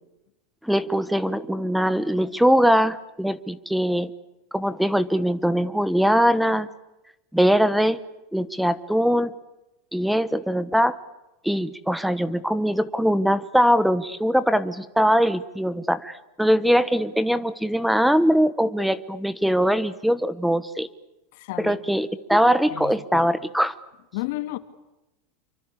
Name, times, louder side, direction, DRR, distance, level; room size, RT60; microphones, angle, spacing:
voice 1, 0.6-4.1 4.5-6.7 7.3-8.0 8.3-9.3 9.9-11.0 11.4-20.9 21.6-23.7, equal, ahead, 16 dB, 1.0 m, -21 dB
voice 2, 21.3-21.8 22.7-23.3 24.1-24.6, left 17 dB, 65° left, 10 dB, 2.6 m, -32 dB
28.5 x 24.5 x 8.5 m, 0.96 s
supercardioid pair, 155°, 0 cm